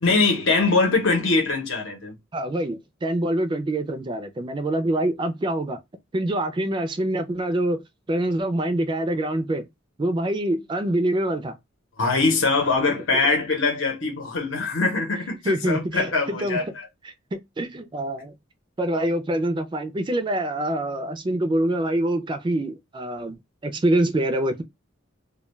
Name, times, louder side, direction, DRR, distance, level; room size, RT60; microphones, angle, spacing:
voice 1, 0.0-2.1 12.0-16.8, left 3 dB, 70° left, 0.8 m, -22 dB
voice 2, 2.3-5.8 6.1-9.7 10.0-11.6 15.4-16.6 17.0-18.3 18.8-23.4 23.6-24.6, right 1 dB, 25° right, 0.3 m, -25 dB
2.2 x 2.2 x 3.0 m
head